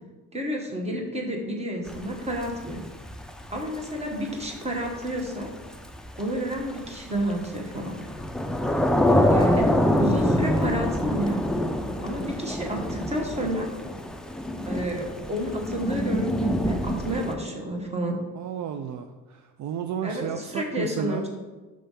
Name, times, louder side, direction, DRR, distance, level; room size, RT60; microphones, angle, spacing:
voice 1, 0.3-2.8 3.5-5.5 6.1-8.0 9.3-9.7 10.0-11.4 12.0-13.7 14.6-18.2 20.0-21.3, equal, 20° right, 1 dB, 1.4 m, -30 dB
Thunder / Rain, 1.9-17.3, left 1 dB, ahead, 0.4 m, -26 dB
voice 2, 18.4-21.3, right 8 dB, 55° right, 7 dB, 0.5 m, -32 dB
6.3 x 3.4 x 5.5 m, 1.2 s
cardioid pair, 90°, 35 cm